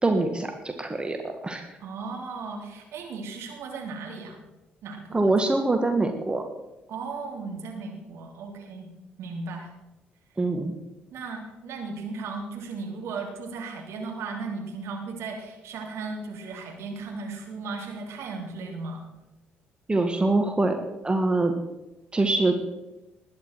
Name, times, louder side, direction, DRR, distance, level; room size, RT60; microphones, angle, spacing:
voice 1, 0.0-1.7 5.1-6.4 10.4-10.7 19.9-21.5 22.1-22.5, right 2 dB, 20° right, 5 dB, 1.7 m, -24 dB
voice 2, 1.8-4.4 4.8-5.3 6.9-8.9 9.2-9.7 11.1-19.1, right 4 dB, 60° right, 2 dB, 3.0 m, -36 dB
20.0 x 9.5 x 4.7 m, 0.97 s
figure-of-eight pair, 45°, 5 cm